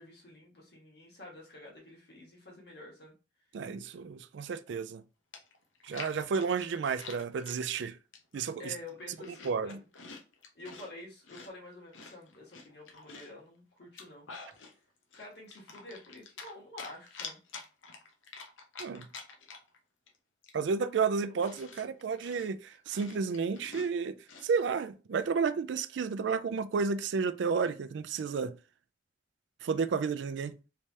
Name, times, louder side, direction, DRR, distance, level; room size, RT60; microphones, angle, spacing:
voice 1, 0.0-3.1 8.6-9.9 10.5-14.3 15.1-17.4, left 2 dB, 55° left, 1.5 m, -49 dB
voice 2, 3.5-5.0 5.8-8.0 8.3-8.7 9.4-9.8 18.8-19.1 20.5-24.1 24.4-28.5 29.6-30.6, right 5 dB, 70° right, 0.3 m, -31 dB
Chewing mastication, 4.9-5.0 5.3-7.6 8.1-8.5 8.8-10.9 11.3-13.4 13.8-14.7 15.1-16.5 16.8-19.8 20.1-20.2 20.4-24.5, left 5 dB, 85° left, 0.8 m, -48 dB
3.3 x 3.2 x 2.7 m
head